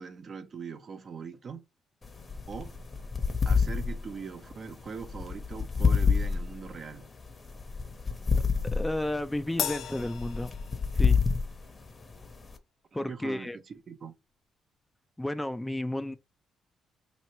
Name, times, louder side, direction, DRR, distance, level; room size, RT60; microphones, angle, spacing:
voice 1, 0.0-1.6 2.5-2.7 3.5-7.1 12.9-14.1, right 5 dB, 45° right, 0.6 m, -41 dB
sound 1, 2.0-12.6, left 5 dB, 30° left, 0.8 m, -29 dB
voice 2, 8.6-10.5 10.9-11.2 12.9-13.6 15.2-16.2, left 1 dB, 10° left, 0.4 m, -32 dB
Crash cymbal, 9.6-11.3, left 9 dB, 70° left, 0.4 m, -35 dB
3.0 x 2.8 x 4.2 m
cardioid pair, 90°, 0 cm